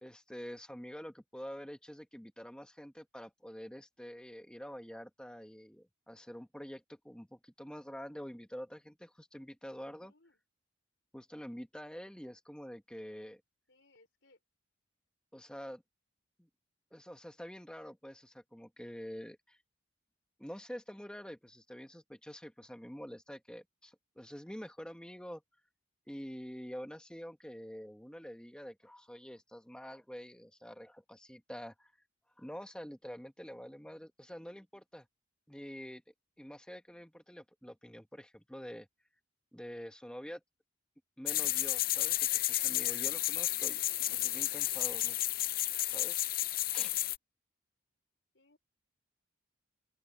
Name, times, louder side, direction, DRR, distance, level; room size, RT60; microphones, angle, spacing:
voice 1, 0.0-10.1 11.1-13.4 15.3-15.8 16.4-16.5 16.9-19.6 20.4-25.4 26.1-31.9 32.4-35.1 35.5-36.0 36.4-38.9 39.5-40.4 41.2-43.8 44.1-45.2 45.8-46.2 46.7-46.9, equal, 5° left, 1.3 m, -47 dB
voice 2, 10.0-10.4 13.7-14.4 48.3-48.6, left 2 dB, 65° left, 4.7 m, -66 dB
sound 1, 41.3-47.2, left 15 dB, 45° left, 0.5 m, -32 dB
open air
head